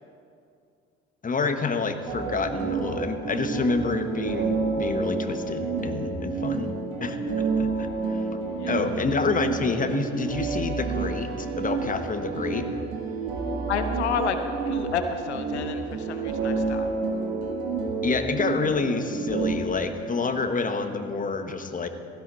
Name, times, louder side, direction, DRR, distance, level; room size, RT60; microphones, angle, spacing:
voice 1, 1.2-6.7 7.0-7.2 7.6-12.7 18.0-21.9, left 4 dB, 25° left, 7 dB, 1.3 m, -28 dB
sound 1, 2.1-19.5, right 4 dB, 70° right, 1.6 m, -29 dB
voice 2, 13.7-14.4 14.6-16.9, left 7 dB, 85° left, 8 dB, 0.7 m, -30 dB
16.5 x 12.5 x 4.1 m, 2.4 s
hypercardioid pair, 60°, 33 cm